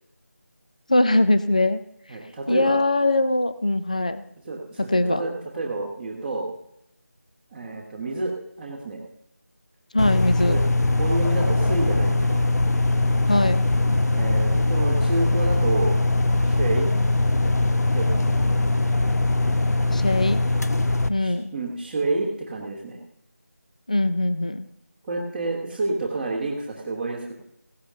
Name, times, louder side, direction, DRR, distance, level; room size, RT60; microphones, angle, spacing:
voice 1, 0.9-1.8 2.5-4.2 4.8-5.2 9.9-10.6 13.3-13.7 19.9-20.4 21.1-21.5 23.9-24.7, left 2 dB, 25° left, 12 dB, 0.5 m, -21 dB
voice 2, 2.1-2.8 4.4-6.5 7.5-8.3 8.6-9.0 10.5-10.6 11.0-12.4 14.1-15.9 16.4-16.9 17.9-18.6 21.2-23.0 25.0-27.3, right 2 dB, ahead, -10 dB, 1.1 m, -29 dB
sound 1, 10.0-21.1, left 2 dB, 75° left, 0.9 m, -21 dB
16.5 x 11.5 x 3.7 m, 0.76 s
figure-of-eight pair, 175°, 9 cm